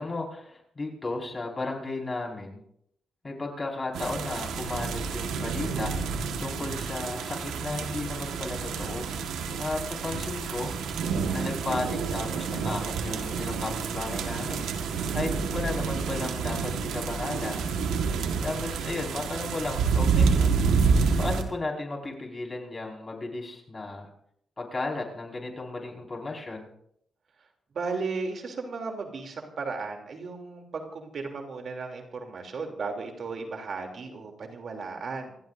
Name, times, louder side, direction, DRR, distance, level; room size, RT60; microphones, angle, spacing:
voice 1, 0.0-2.6 3.2-5.9 6.4-9.1 9.6-10.8 11.3-14.7 15.1-20.6 21.2-24.1 24.6-26.7, left 2 dB, 35° left, 0 dB, 5.2 m, -34 dB
sound 1, 3.9-21.4, right 5 dB, 90° right, 1.6 m, -28 dB
voice 2, 27.7-35.4, right 4 dB, 65° right, 3 dB, 3.1 m, -35 dB
28.5 x 16.0 x 2.7 m, 0.72 s
supercardioid pair, 55°, 0 cm